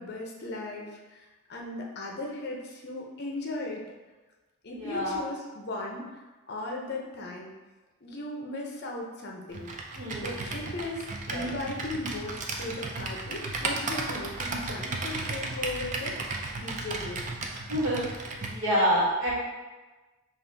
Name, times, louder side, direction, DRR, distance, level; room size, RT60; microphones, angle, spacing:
voice 1, 0.0-3.8 4.6-6.1 6.5-7.5 8.0-9.7 10.2-17.2, left 2 dB, 45° left, 0 dB, 0.6 m, -37 dB
voice 2, 4.8-5.2 10.0-10.3 11.3-11.5 17.7-18.0 18.5-19.3, equal, 60° right, -5 dB, 1.3 m, -27 dB
Computer keyboard, 9.5-18.6, right 3 dB, 35° right, 0.4 m, -35 dB
5.3 x 2.4 x 3.3 m, 1.2 s
head